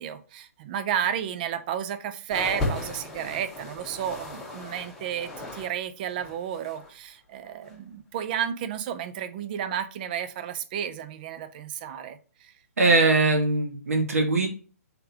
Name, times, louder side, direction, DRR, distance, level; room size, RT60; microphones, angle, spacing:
voice 1, 0.0-12.5, right 9 dB, 35° right, 12 dB, 0.5 m, -32 dB
sound 1, 2.3-5.7 6.0-6.9 7.6-7.7, left 2 dB, 5° left, 1.5 m, -35 dB
voice 2, 12.8-14.5, right 3 dB, 65° right, 5 dB, 1.3 m, -21 dB
3.9 x 3.8 x 2.8 m, 0.38 s
figure-of-eight pair, 135°, 8 cm